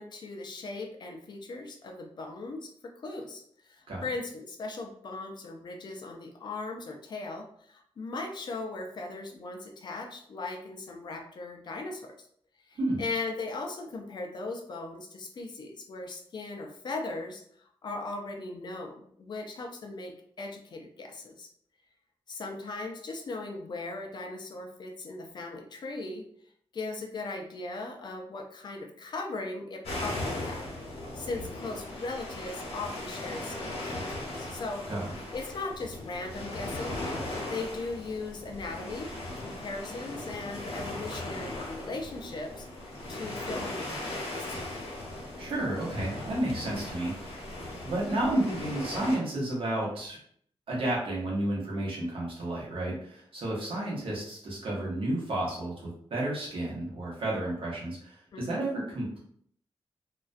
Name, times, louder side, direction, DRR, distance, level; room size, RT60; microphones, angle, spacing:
voice 1, 0.0-12.1 12.7-21.5 22.3-26.2 26.7-30.7 31.1-34.8 35.3-37.0 37.5-39.1 39.4-42.7 43.1-44.6 58.3-58.6, left 3 dB, 45° left, 2 dB, 0.4 m, -38 dB
sound 1, 29.8-49.2, left 1 dB, 90° left, 0.8 m, -38 dB
voice 2, 45.4-47.1 47.8-50.2 50.7-59.2, right 1 dB, 60° right, -4 dB, 0.9 m, -31 dB
2.3 x 2.1 x 2.4 m, 0.64 s
wide cardioid pair, 180°, 10 cm